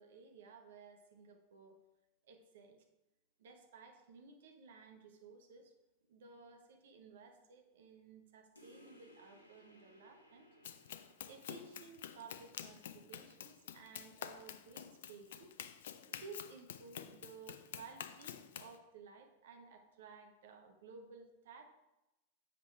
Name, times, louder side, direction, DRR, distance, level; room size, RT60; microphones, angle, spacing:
voice 1, 0.0-1.8 2.2-2.8 3.4-5.7 6.1-10.5 11.2-15.5 16.1-21.6, right 4 dB, 60° right, 5 dB, 1.1 m, -56 dB
sound 1, 8.5-13.6, equal, 80° left, 1.1 m, -65 dB
Run, 10.6-18.8, left 9 dB, 60° left, 0.5 m, -49 dB
7.5 x 5.2 x 4.5 m, 0.97 s
figure-of-eight pair, 90°, 0 cm